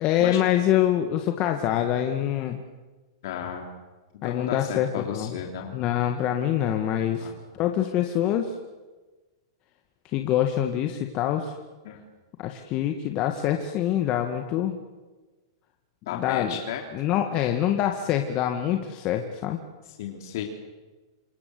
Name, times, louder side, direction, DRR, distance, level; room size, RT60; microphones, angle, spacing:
voice 1, 0.0-2.6 4.2-5.3 5.7-7.3 7.5-8.5 10.1-11.5 12.4-14.8 16.1-16.6 16.9-19.6, left 11 dB, 40° left, 5 dB, 2.1 m, -25 dB
voice 2, 3.2-3.8 4.2-5.8 7.2-7.4 11.9-12.0 16.1-16.8 19.9-20.4, left 8 dB, 65° left, 2 dB, 3.4 m, -34 dB
27.5 x 24.5 x 8.0 m, 1.2 s
hypercardioid pair, 115°, 2 cm